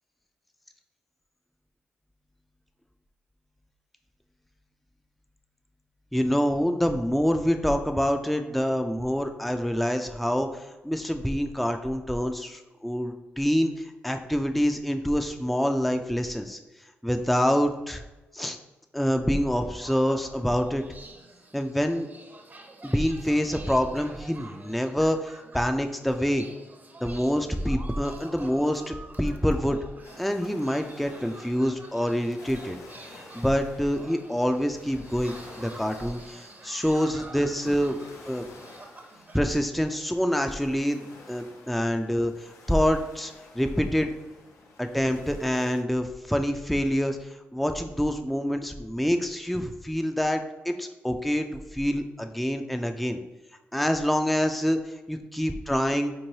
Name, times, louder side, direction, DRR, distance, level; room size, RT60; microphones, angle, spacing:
voice 1, 6.1-16.6 17.0-18.0 18.3-18.6 18.9-20.8 21.5-22.1 22.8-26.4 27.0-29.8 30.2-32.8 33.1-38.0 38.3-38.5 39.3-44.1 44.8-53.2 53.7-56.1, equal, ahead, 5 dB, 0.4 m, -26 dB
sound 1, 19.8-39.6, right 2 dB, 35° right, 0.7 m, -48 dB
sound 2, 30.0-45.8, left 3 dB, 80° left, 0.6 m, -51 dB
4.4 x 3.0 x 2.8 m, 1.1 s
supercardioid pair, 45°, 5 cm